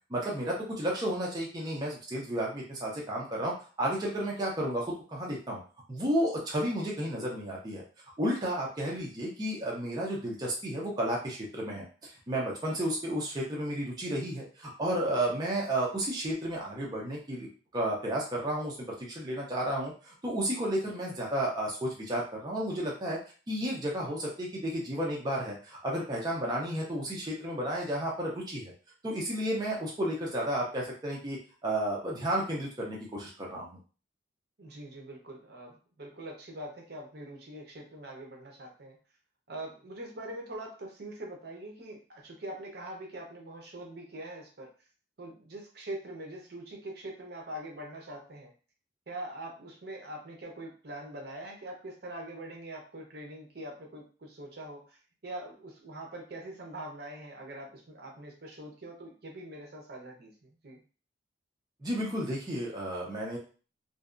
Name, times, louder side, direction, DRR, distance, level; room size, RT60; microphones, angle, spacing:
voice 1, 0.1-5.6 5.9-7.8 8.2-17.5 17.7-23.2 23.5-28.7 29.0-33.8 61.8-63.4, right 1 dB, 25° right, -3 dB, 0.5 m, -32 dB
voice 2, 34.6-39.0 39.5-44.7 45.2-48.5 49.1-60.3 60.6-60.8, right 1 dB, 60° right, 1 dB, 0.7 m, -43 dB
2.6 x 2.2 x 2.4 m, 0.38 s
head